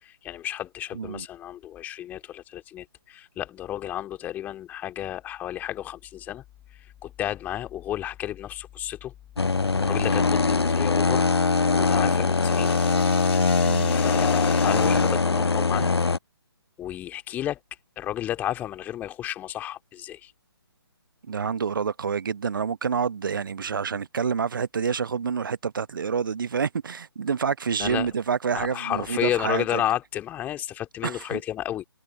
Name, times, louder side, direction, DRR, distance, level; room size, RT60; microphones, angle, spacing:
voice 1, 0.0-6.4 6.8-9.1 9.8-11.3 11.7-12.8 13.6-15.9 16.8-17.6 18.0-20.3 27.8-28.1 28.5-31.8, left 12 dB, 15° left, 2.4 m, -32 dB
voice 2, 0.9-1.3 13.6-14.0 21.3-29.8 31.0-31.4, right 6 dB, 55° right, 0.9 m, -28 dB
sound 1, 9.4-16.2, left 4 dB, 85° left, 0.5 m, -22 dB
sound 2, 11.5-15.3, left 16 dB, 30° left, 7.4 m, -41 dB
figure-of-eight pair, 140°, 13 cm